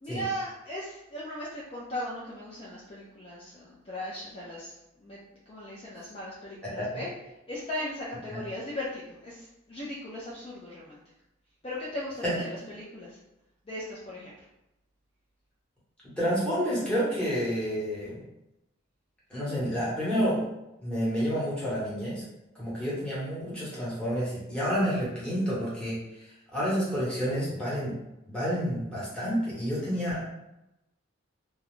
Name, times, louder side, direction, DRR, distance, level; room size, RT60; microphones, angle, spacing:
voice 1, 0.0-5.2 5.5-7.1 7.5-11.0 11.6-13.2 13.7-14.3, left 1 dB, 30° left, -6 dB, 0.4 m, -38 dB
voice 2, 16.2-18.2 19.3-20.4 20.8-22.2 22.6-26.0 26.5-27.9 28.2-30.2, equal, 5° left, -9 dB, 0.9 m, -29 dB
2.3 x 2.0 x 3.0 m, 0.90 s
head